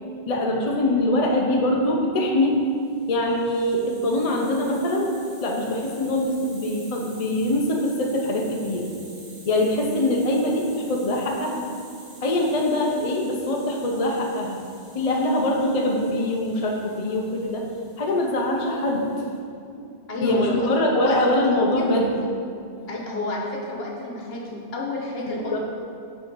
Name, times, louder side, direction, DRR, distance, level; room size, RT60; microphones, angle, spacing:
voice 1, 0.3-2.6 3.1-5.1 5.4-8.9 9.4-11.7 12.2-14.6 14.9-17.7 18.0-19.3 19.7-19.9 20.2-22.3 25.3-25.6, left 1 dB, 40° left, 0 dB, 0.7 m, -23 dB
Hiss, 2.7-19.4, right 2 dB, 80° right, 1.7 m, -49 dB
voice 2, 20.1-21.4 21.7-21.9 22.9-25.6, left 1 dB, 60° left, -2 dB, 1.3 m, -30 dB
6.2 x 4.8 x 5.3 m, 2.4 s
omnidirectional pair, 1.2 m